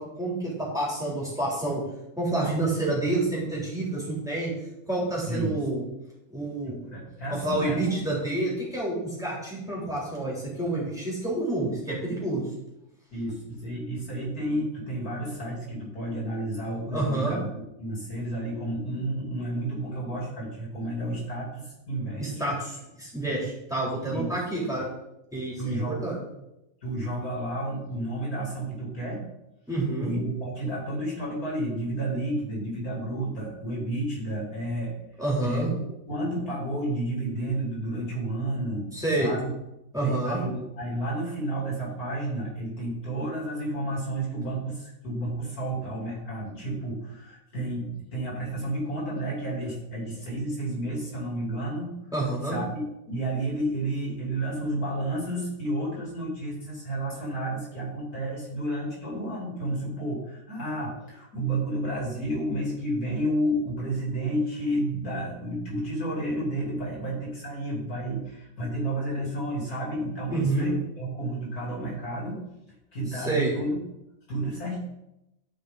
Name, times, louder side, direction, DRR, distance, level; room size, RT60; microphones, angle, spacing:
voice 1, 0.0-1.8 2.2-4.5 4.9-5.8 6.3-6.9 7.3-12.4 16.9-17.4 22.2-24.9 25.3-26.2 29.7-30.1 35.2-35.7 38.9-39.3 39.9-40.4 52.1-52.6 70.3-70.7 73.1-73.5, right 2 dB, ahead, -5 dB, 3.0 m, -28 dB
voice 2, 5.3-5.6 6.6-7.9 13.1-22.3 24.1-24.4 25.6-26.1 26.8-29.2 30.0-34.9 35.4-35.7 36.1-38.9 39.2-39.5 40.0-51.9 52.4-72.4 72.9-73.8 74.3-74.8, right 1 dB, 85° left, -4 dB, 3.6 m, -31 dB
12.5 x 4.9 x 3.9 m, 0.86 s
omnidirectional pair, 1.5 m